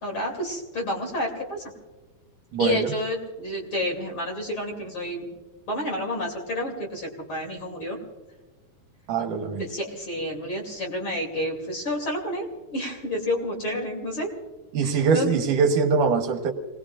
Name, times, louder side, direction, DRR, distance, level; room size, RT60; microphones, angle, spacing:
voice 1, 0.0-1.6 2.6-5.3 5.7-8.0 9.6-14.3 14.8-15.4, left 1 dB, 40° left, 1 dB, 3.2 m, -30 dB
voice 2, 2.5-2.9 9.1-9.6 14.7-16.5, right 5 dB, 75° right, 5 dB, 2.5 m, -22 dB
29.0 x 19.5 x 2.4 m, 1.3 s
omnidirectional pair, 3.9 m